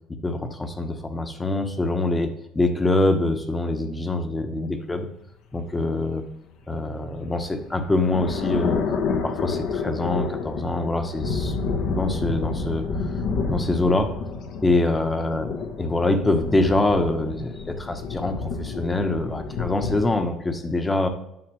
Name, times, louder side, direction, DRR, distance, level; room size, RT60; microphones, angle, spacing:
voice 1, 0.1-5.1 5.5-6.3 6.7-8.8 9.1-12.9 13.4-14.2 14.6-21.1, left 2 dB, 20° left, 7 dB, 1.1 m, -24 dB
sound 1, 7.1-20.2, left 4 dB, 65° left, 1.1 m, -29 dB
9.6 x 5.7 x 3.1 m, 0.83 s
hypercardioid pair, 70°, 0 cm